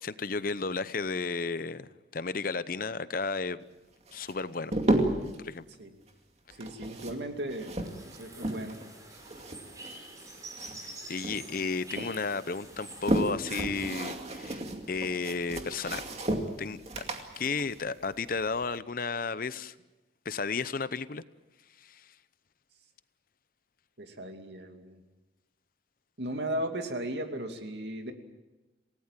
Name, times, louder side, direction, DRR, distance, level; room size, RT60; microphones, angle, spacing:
voice 1, 0.0-3.6 4.1-4.7 5.4-5.6 10.8-14.6 14.9-16.0 16.6-17.0 17.4-19.7 20.2-21.2 21.8-22.0, left 4 dB, 50° left, 15 dB, 0.7 m, -33 dB
sound 1, 4.1-5.4 6.5-8.8 9.1-11.0 11.2-12.1 12.6-18.7, right 1 dB, 35° right, 2.4 m, -33 dB
voice 2, 6.6-7.8 8.2-8.8 24.0-25.0 26.2-28.1, right 1 dB, 65° right, 5 dB, 2.6 m, -36 dB
sound 2, 7.6-13.3, right 2 dB, 20° right, 5.4 m, -47 dB
28.0 x 18.0 x 7.5 m, 1.1 s
head